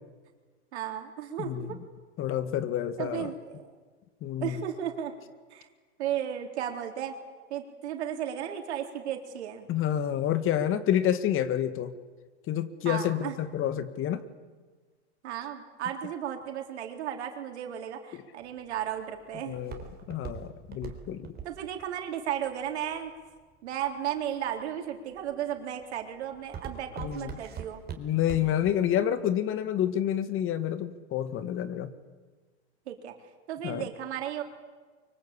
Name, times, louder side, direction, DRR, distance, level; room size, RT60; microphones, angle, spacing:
voice 1, 0.7-1.8 3.0-3.7 4.4-5.1 5.5-5.7 6.0-7.1 7.5-9.7 12.8-13.3 15.2-19.6 21.4-23.1 23.6-27.8 32.9-33.1 33.5-34.4, right 10 dB, 70° right, 4 dB, 4.0 m, -34 dB
voice 2, 2.2-3.3 4.2-4.6 9.7-11.9 12.5-14.2 18.1-18.2 19.5-19.8 20.1-21.3 27.0-27.3 28.0-31.9 33.6-33.8, left 10 dB, 40° left, 12 dB, 2.0 m, -28 dB
Walk footsteps, 18.4-23.6 24.2-24.6 25.1-25.5 25.8-28.7 29.0-29.1, right 7 dB, 30° right, 4.1 m, -41 dB
24.0 x 24.0 x 8.6 m, 1.4 s
hypercardioid pair, 105°, 34 cm